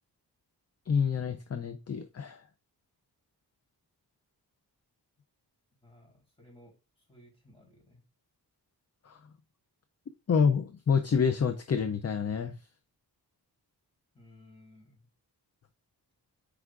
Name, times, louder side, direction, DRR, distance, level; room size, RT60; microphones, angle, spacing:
voice 1, 0.9-2.4 9.1-9.2 10.3-12.6, left 6 dB, 40° left, 0.5 m, -28 dB
voice 2, 5.8-8.0 14.1-15.1, left 1 dB, 15° left, 3.6 m, -58 dB
8.0 x 4.9 x 2.4 m
wide cardioid pair, 115°, 40 cm